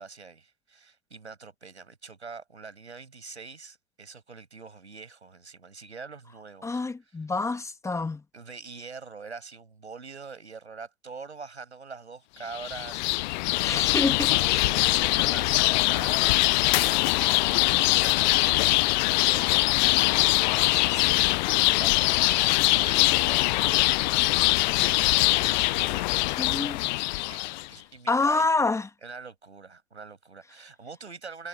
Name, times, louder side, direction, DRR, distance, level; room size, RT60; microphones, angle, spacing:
voice 1, 0.0-6.8 8.3-14.1 14.7-18.8 19.1-19.7 19.9-20.3 20.6-27.0 27.3-28.5 29.0-31.5, right 4 dB, 80° right, 7.2 m, -44 dB
voice 2, 6.6-8.2 13.6-14.7 26.4-26.8 28.1-28.9, left 3 dB, 10° left, 2.0 m, -27 dB
sound 1, 12.5-27.7, left 22 dB, 45° left, 0.9 m, -23 dB
figure-of-eight pair, 100°, 33 cm